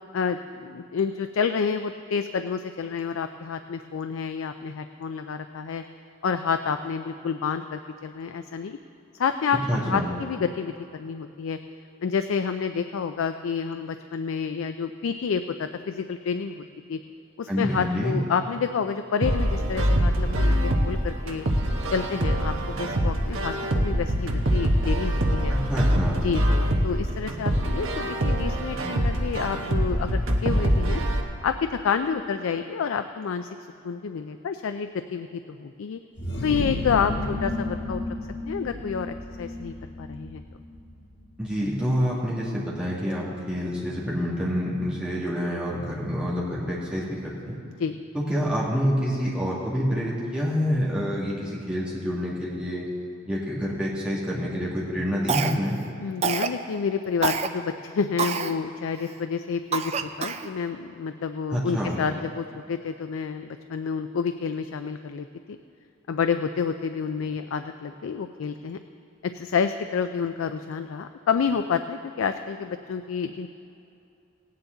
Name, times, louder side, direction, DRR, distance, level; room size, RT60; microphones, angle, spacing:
voice 1, 0.1-5.8 6.2-8.8 9.1-11.6 12.0-17.0 17.4-21.4 21.9-25.5 26.2-31.0 31.4-33.5 33.8-36.0 36.4-38.0 38.5-40.4 47.8-48.0 56.0-65.6 66.1-68.8 69.2-73.5, left 6 dB, 90° left, 9 dB, 0.4 m, -29 dB
voice 2, 9.7-10.1 17.5-18.2 25.5-26.2 41.4-47.6 48.1-52.9 53.2-55.8 61.5-62.0, equal, 5° right, -7 dB, 2.2 m, -27 dB
sound 1, 19.2-31.2, equal, 85° right, 1.1 m, -24 dB
sound 2, 36.2-41.7, left 1 dB, 55° left, 1.5 m, -33 dB
Cough, 55.3-55.8 56.2-56.6 57.2-57.5 58.2-58.5 59.1-59.2 59.7-60.5, right 6 dB, 30° right, 0.4 m, -26 dB
16.5 x 9.4 x 3.9 m, 2.7 s
head